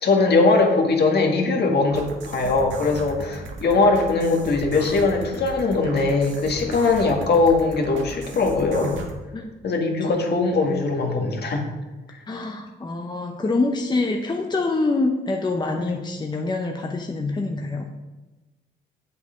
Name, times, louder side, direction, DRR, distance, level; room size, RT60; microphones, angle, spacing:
voice 1, 0.0-9.0 9.6-11.7 12.1-12.2 15.8-16.0, left 3 dB, 55° left, 2 dB, 1.9 m, -21 dB
sound 1, 1.9-9.1, right 3 dB, 75° right, 1.6 m, -36 dB
voice 2, 12.3-17.9, left 3 dB, 20° left, 2 dB, 0.9 m, -25 dB
8.1 x 6.8 x 5.2 m, 1.1 s
cardioid pair, 90°, 20 cm